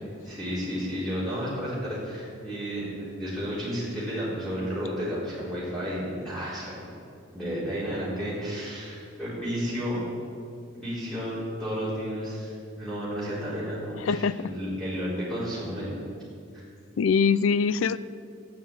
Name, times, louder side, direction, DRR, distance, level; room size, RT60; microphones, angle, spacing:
voice 1, 0.1-6.9 7.3-10.0 10.7-16.0 16.5-16.6, equal, ahead, -10 dB, 4.3 m, -32 dB
voice 2, 13.9-14.5 17.0-18.0, left 5 dB, 80° left, 16 dB, 0.4 m, -23 dB
15.0 x 8.7 x 8.6 m, 2.4 s
head